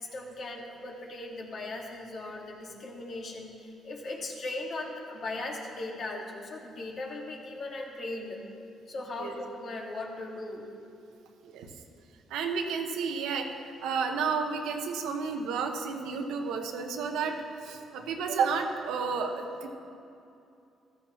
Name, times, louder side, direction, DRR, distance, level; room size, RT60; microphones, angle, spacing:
voice 1, 0.0-8.4 8.9-10.7, left 2 dB, 60° left, -1 dB, 2.0 m, -38 dB
voice 2, 12.3-17.4 17.6-19.7, right 5 dB, 90° right, 3 dB, 1.0 m, -31 dB
14.5 x 14.0 x 3.1 m, 2.7 s
cardioid pair, 90°, 0 cm